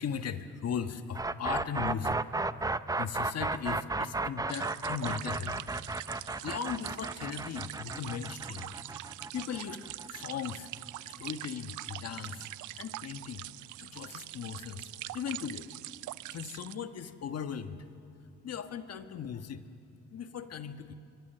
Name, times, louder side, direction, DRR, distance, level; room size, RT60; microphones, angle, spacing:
voice 1, 0.0-2.2 3.0-5.6 6.2-8.7 9.3-10.7 11.0-12.5 12.7-13.5 13.8-15.7 16.3-17.8 18.4-19.6 20.1-20.9, left 7 dB, 55° left, 8 dB, 1.4 m, -38 dB
sound 1, 1.1-11.0, right 3 dB, 10° right, 0.6 m, -34 dB
sound 2, 4.5-16.8, right 16 dB, 75° right, 0.5 m, -44 dB
27.0 x 24.0 x 6.8 m, 2.7 s
cardioid pair, 90°, 30 cm